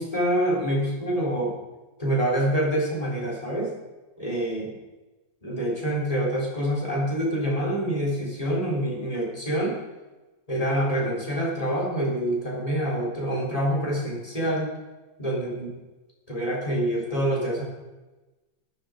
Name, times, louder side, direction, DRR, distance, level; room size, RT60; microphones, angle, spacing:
voice 1, 0.0-1.6 2.0-3.7 4.2-4.7 5.4-9.8 10.5-14.7 15.2-15.7 16.3-17.6, right 1 dB, 15° left, -3 dB, 3.8 m, -26 dB
13.5 x 12.0 x 5.0 m, 1.1 s
omnidirectional pair, 2.1 m